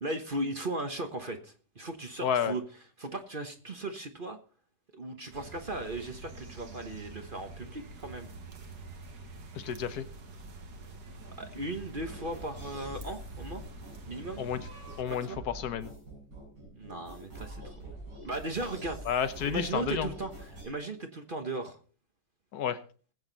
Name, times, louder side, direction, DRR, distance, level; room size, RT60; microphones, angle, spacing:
voice 1, 0.0-2.6 3.0-4.4 4.9-8.3 11.4-13.6 14.0-14.4 15.1-15.4 16.8-17.9 18.2-19.0 19.4-21.8, right 2 dB, 35° right, 6 dB, 1.2 m, -37 dB
voice 2, 2.2-2.5 9.5-10.0 14.4-14.6 15.0-15.9 19.1-20.1 22.5-22.8, left 8 dB, 65° left, 12 dB, 1.5 m, -31 dB
sound 1, 5.3-15.0, right 2 dB, 65° right, 2.1 m, -46 dB
sound 2, 11.9-20.6, right 2 dB, 90° right, 7.7 m, -46 dB
20.0 x 8.1 x 4.0 m, 0.40 s
omnidirectional pair, 1.9 m